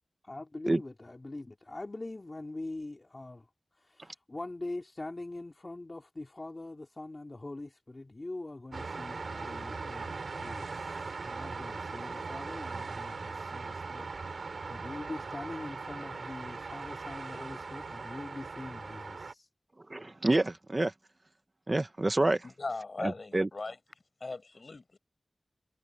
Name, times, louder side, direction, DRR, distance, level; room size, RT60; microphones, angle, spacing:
voice 1, 0.3-3.5 3.7-19.5, left 2 dB, 40° left, 2.6 m, -43 dB
sound 1, 8.7-19.3, right 4 dB, 85° right, 5.2 m, -40 dB
voice 2, 19.9-20.9 21.7-22.4 23.0-23.5, right 2 dB, 35° right, 1.1 m, -27 dB
voice 3, 22.4-23.8 24.2-25.0, left 3 dB, 55° left, 7.3 m, -39 dB
wide cardioid pair, 75°, 0 cm